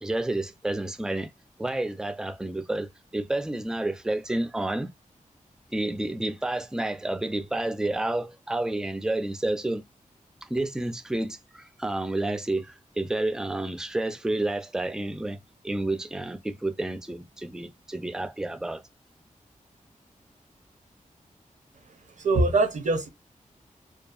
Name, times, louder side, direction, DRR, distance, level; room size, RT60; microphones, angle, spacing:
voice 1, 0.0-1.3 1.6-4.9 5.7-9.8 10.4-15.4 15.6-18.8, right 2 dB, 5° right, 0.3 m, -30 dB
voice 2, 22.2-23.1, right 2 dB, 65° right, 0.6 m, -23 dB
2.6 x 2.3 x 2.3 m
wide cardioid pair, 95°, 14 cm